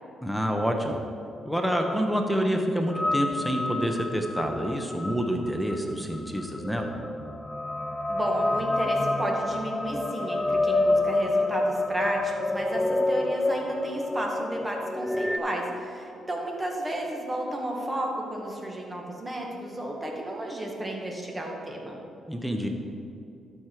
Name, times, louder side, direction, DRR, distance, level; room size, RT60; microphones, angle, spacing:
voice 1, 0.2-1.0 1.4-6.9 22.3-22.7, equal, ahead, 3 dB, 0.9 m, -27 dB
sound 1, 2.9-15.4, left 2 dB, 20° left, 0.5 m, -28 dB
voice 2, 8.1-22.0, right 1 dB, 20° right, -1 dB, 1.7 m, -32 dB
12.5 x 5.0 x 4.6 m, 2.7 s
cardioid pair, 80°, 0 cm